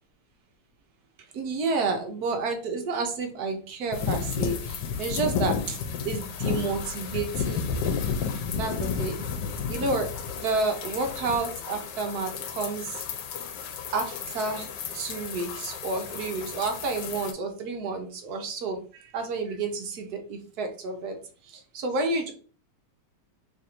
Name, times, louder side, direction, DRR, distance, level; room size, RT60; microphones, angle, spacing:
voice 1, 1.3-5.8 6.0-7.7 8.5-9.3 9.7-10.1 10.4-12.9 13.9-14.7 14.9-21.2 21.5-22.3, right 3 dB, 65° right, 5 dB, 1.2 m, -30 dB
sound 1, 3.9-17.3, left 6 dB, 75° left, 1.2 m, -32 dB
3.2 x 2.5 x 4.3 m, 0.41 s
omnidirectional pair, 1.9 m